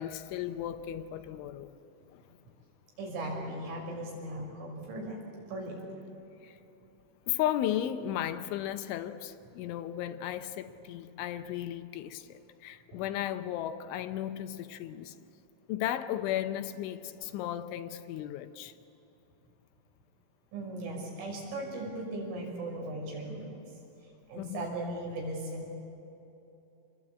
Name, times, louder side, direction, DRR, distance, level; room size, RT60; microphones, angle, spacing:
voice 1, 0.0-1.7 2.1-2.2 6.4-6.6 7.3-15.2 15.7-18.7 24.4-24.7, left 11 dB, 80° left, 9 dB, 3.2 m, -35 dB
voice 2, 3.0-5.2 5.5-6.1 12.9-13.0 20.5-23.6 24.3-25.7, right 1 dB, 85° right, -1 dB, 8.2 m, -38 dB
27.0 x 21.0 x 8.6 m, 3.0 s
omnidirectional pair, 5.6 m